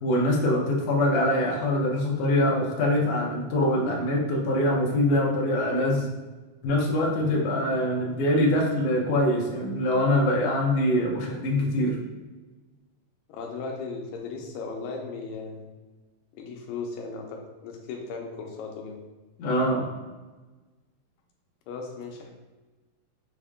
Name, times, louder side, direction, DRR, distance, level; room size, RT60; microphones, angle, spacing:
voice 1, 0.0-6.1 6.6-12.0 19.4-19.8, left 1 dB, 75° left, -2 dB, 1.5 m, -24 dB
voice 2, 13.3-15.7 16.3-19.0 21.7-22.3, left 4 dB, 90° left, 1 dB, 2.3 m, -36 dB
6.4 x 2.1 x 3.5 m, 1.2 s
omnidirectional pair, 3.8 m